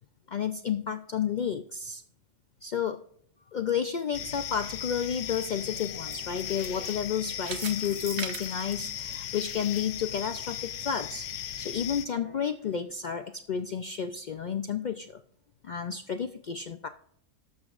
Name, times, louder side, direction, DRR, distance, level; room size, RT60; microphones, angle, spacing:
voice 1, 0.3-2.0 2.6-3.0 3.5-11.3 11.6-15.1 15.6-16.9, left 7 dB, 85° left, 8 dB, 0.4 m, -31 dB
sound 1, 4.1-12.1, left 10 dB, 70° left, 1.0 m, -37 dB
sound 2, 4.8-9.8 10.2-10.3 10.9-11.0, right 6 dB, 60° right, 1.1 m, -42 dB
sound 3, 5.3-7.8 8.1-8.2 8.5-8.6 8.9-9.0 10.2-10.3 12.0-12.9, left 4 dB, 35° left, 0.9 m, -52 dB
18.5 x 7.3 x 2.5 m, 0.66 s
omnidirectional pair, 1.4 m